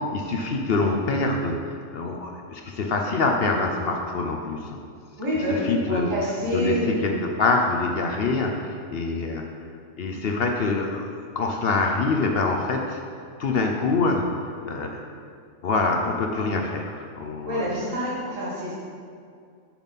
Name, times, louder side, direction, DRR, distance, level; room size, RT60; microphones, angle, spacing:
voice 1, 0.1-1.6 1.9-4.6 5.5-6.1 6.5-9.4 10.0-13.0 13.4-14.3 14.7-15.0 15.6-17.6, left 3 dB, 60° left, 2 dB, 0.7 m, -25 dB
voice 2, 5.2-7.1 17.5-18.8, equal, 75° right, -7 dB, 2.4 m, -27 dB
7.0 x 6.1 x 4.1 m, 2.3 s
omnidirectional pair, 1.4 m